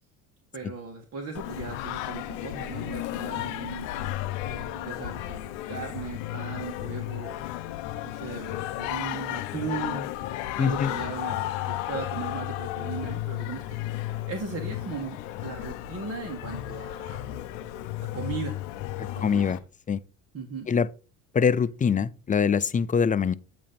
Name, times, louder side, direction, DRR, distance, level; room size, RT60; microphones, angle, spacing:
voice 1, 0.5-3.9 4.5-7.4 8.0-10.1 10.6-17.2 18.1-18.6 19.1-19.6 20.3-20.7, right 5 dB, 40° right, 1.6 m, -37 dB
Singing, 1.3-19.6, left 14 dB, 85° left, 0.6 m, -34 dB
voice 2, 10.6-10.9 19.2-19.6 19.9-20.0 20.7-20.9 21.3-23.3, left 6 dB, 20° left, 0.4 m, -23 dB
8.3 x 3.0 x 5.2 m
supercardioid pair, 80°, 38 cm